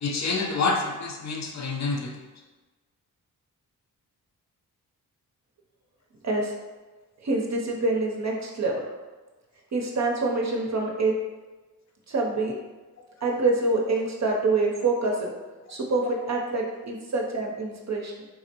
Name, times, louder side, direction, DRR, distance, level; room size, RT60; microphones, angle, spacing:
voice 1, 0.0-2.1, left 3 dB, 45° left, 2 dB, 0.6 m, -27 dB
voice 2, 6.2-6.5 7.2-8.8 9.7-11.2 12.1-12.6 13.2-15.3 15.7-18.3, right 3 dB, 45° right, -1 dB, 0.6 m, -26 dB
3.7 x 2.1 x 2.8 m, 1.2 s
cardioid pair, 50°, 37 cm